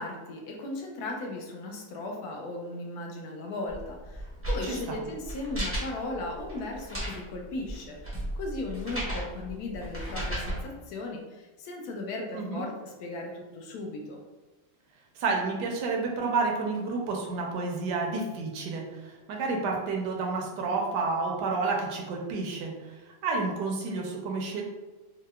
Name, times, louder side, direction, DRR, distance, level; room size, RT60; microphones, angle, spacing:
voice 1, 0.0-14.2, left 2 dB, 75° left, 1 dB, 0.9 m, -37 dB
sound 1, 3.7-10.6, right 1 dB, 20° right, 0.4 m, -35 dB
voice 2, 4.6-5.0 12.3-12.6 15.1-22.7 23.0-24.6, right 3 dB, 70° right, 0 dB, 1.1 m, -30 dB
4.5 x 2.0 x 2.3 m, 1.2 s
omnidirectional pair, 2.1 m